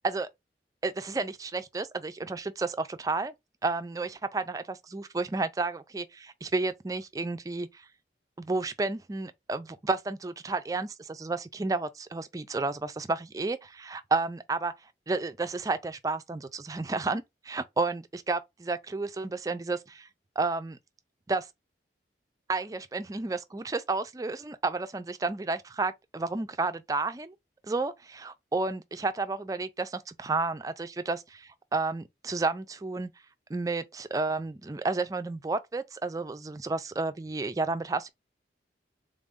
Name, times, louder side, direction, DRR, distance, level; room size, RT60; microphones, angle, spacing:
voice 1, 0.8-3.3 3.6-7.8 8.4-14.7 15.1-20.1 20.4-20.8 21.3-21.5 22.5-27.3 27.6-33.1 33.5-38.1, right 3 dB, 20° right, 0.3 m, -31 dB
3.7 x 2.6 x 3.4 m
head